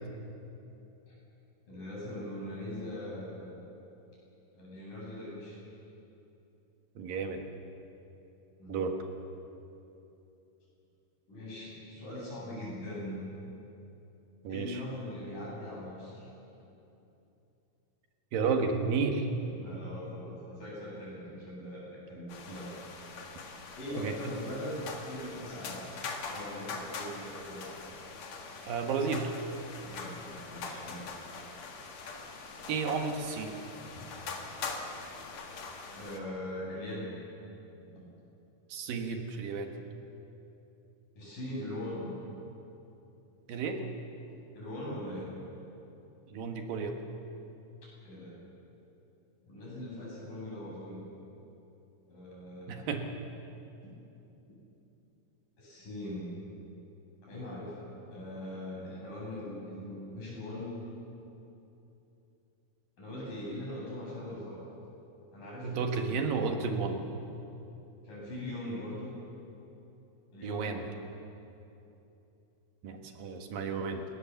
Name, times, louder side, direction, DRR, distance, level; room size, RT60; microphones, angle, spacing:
voice 1, 1.7-3.6 4.6-5.6 8.6-8.8 11.3-13.3 14.5-16.3 19.4-22.7 23.8-25.8 26.2-27.6 29.8-31.1 34.0-34.1 36.0-37.2 41.2-42.1 44.5-45.3 48.1-48.4 49.4-51.0 52.1-53.0 55.6-56.4 57.2-60.8 63.0-64.6 65.3-66.2 68.0-69.1 70.3-70.8, left 1 dB, 70° left, -4 dB, 9.2 m, -41 dB
voice 2, 7.0-7.4 8.7-8.9 14.4-14.8 18.3-19.3 24.0-24.1 28.7-29.3 32.7-33.5 38.7-39.7 43.5-43.8 46.3-47.0 52.7-53.1 65.6-67.1 70.4-70.9 72.8-74.0, right 5 dB, 85° right, 4 dB, 3.4 m, -32 dB
sound 1, 22.3-36.2, left 4 dB, 55° left, 2.9 m, -43 dB
25.0 x 20.0 x 7.2 m, 2.9 s
omnidirectional pair, 3.9 m